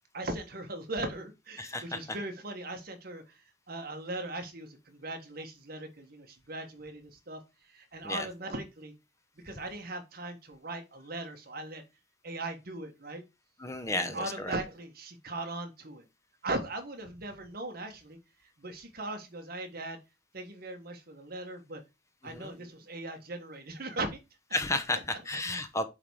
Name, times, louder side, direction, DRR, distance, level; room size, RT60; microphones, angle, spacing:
voice 1, 0.1-7.4 7.7-8.9 9.4-11.8 12.2-13.2 13.9-16.1 16.4-18.2 18.6-20.0 20.3-21.8 22.2-24.2, right 2 dB, 50° right, 1.4 m, -39 dB
voice 2, 1.6-2.2 8.0-8.3 13.6-14.5 22.2-22.5 24.5-25.8, left 2 dB, 15° left, 0.7 m, -33 dB
8.6 x 3.6 x 4.7 m
head